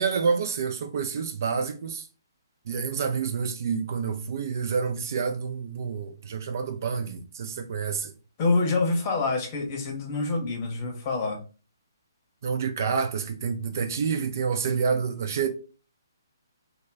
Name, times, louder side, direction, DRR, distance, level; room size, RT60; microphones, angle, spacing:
voice 1, 0.0-2.1 2.7-8.1 12.4-15.5, right 6 dB, 50° right, 0.3 m, -28 dB
voice 2, 8.4-11.4, left 3 dB, 35° left, 0.8 m, -26 dB
2.1 x 2.1 x 3.3 m
figure-of-eight pair, 135°, 2 cm